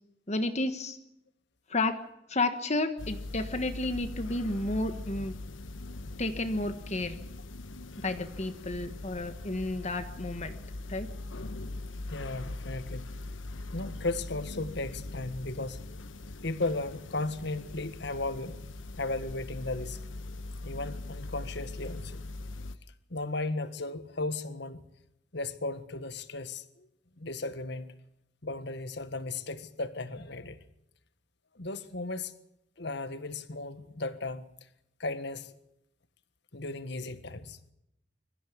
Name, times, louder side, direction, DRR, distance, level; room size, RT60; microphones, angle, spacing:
voice 1, 0.3-1.0 1.7-2.0 2.3-5.3 6.2-7.2 8.0-10.5 10.9-11.1, left 2 dB, 35° left, 1.3 m, -31 dB
sound 1, 3.0-22.8, left 2 dB, 90° left, 1.2 m, -41 dB
voice 2, 12.1-13.1 13.7-15.8 16.4-18.6 19.0-20.0 20.6-22.2 23.1-24.8 25.3-26.9 27.2-27.9 28.4-30.6 31.5-32.3 32.8-34.4 35.0-35.5 36.5-37.6, left 2 dB, 60° left, 1.7 m, -35 dB
23.5 x 14.5 x 8.6 m
head